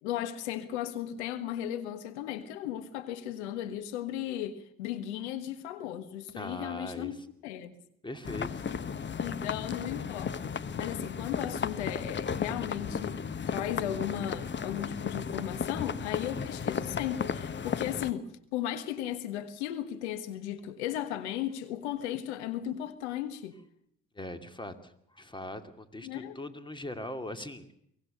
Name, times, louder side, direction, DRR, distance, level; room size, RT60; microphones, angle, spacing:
voice 1, 0.0-7.8 8.7-8.8 9.2-13.2 13.5-23.6 26.0-26.4, left 11 dB, 85° left, 1.4 m, -36 dB
voice 2, 6.3-7.1 8.0-8.6 24.1-27.7, left 1 dB, 15° left, 2.7 m, -40 dB
sound 1, 8.2-18.1, left 6 dB, 35° left, 1.2 m, -34 dB
23.5 x 18.5 x 6.7 m
hypercardioid pair, 60°, 33 cm